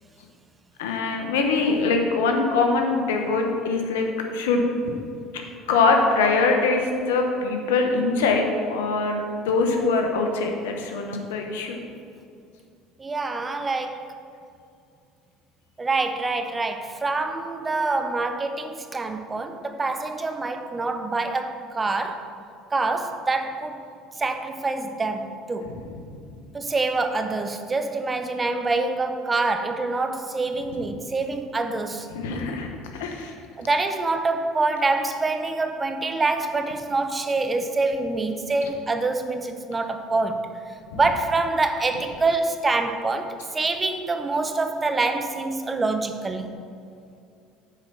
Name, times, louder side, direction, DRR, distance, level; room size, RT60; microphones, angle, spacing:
voice 1, 0.8-4.9 5.7-8.4 8.7-11.8 25.6-26.0 32.1-32.7 32.9-33.3 40.9-41.0, left 3 dB, 85° left, 3 dB, 1.0 m, -23 dB
voice 2, 13.0-14.1 15.8-22.3 22.7-23.8 24.2-25.7 26.5-32.1 33.6-40.5 40.9-46.5, right 3 dB, 25° right, 7 dB, 0.8 m, -26 dB
8.9 x 4.6 x 6.2 m, 2.4 s
hypercardioid pair, 75°, 0 cm